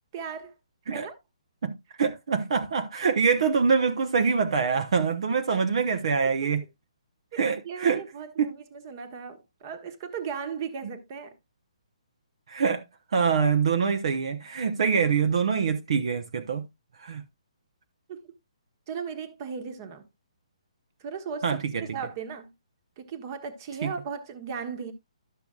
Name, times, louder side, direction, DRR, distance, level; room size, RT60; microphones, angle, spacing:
voice 1, 0.1-0.5 0.9-1.1 7.3-7.4 7.6-11.3 18.1-18.3 18.9-20.1 21.0-22.5 23.0-24.9, right 6 dB, 30° right, 1.4 m, -36 dB
voice 2, 1.6-6.6 7.4-8.0 8.4-8.5 12.5-12.8 13.1-16.7 17.0-17.2 21.4-21.8 23.8-23.9, right 5 dB, 55° right, 0.9 m, -25 dB
12.0 x 6.8 x 2.4 m
hypercardioid pair, 160°, 4 cm